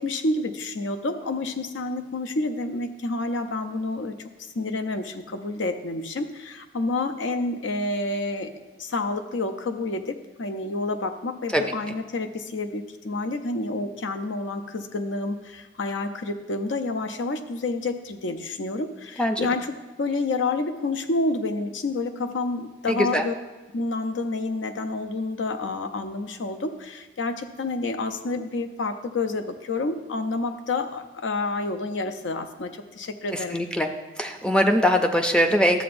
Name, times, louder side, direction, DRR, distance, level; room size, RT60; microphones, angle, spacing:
voice 1, 0.0-4.2 4.5-8.5 8.8-19.7 20.0-23.3 23.7-33.6, left 2 dB, 85° left, 6 dB, 0.6 m, -29 dB
voice 2, 22.9-23.2 33.3-33.9 34.2-35.8, equal, 5° left, 5 dB, 0.4 m, -22 dB
12.0 x 7.6 x 2.6 m, 1.1 s
head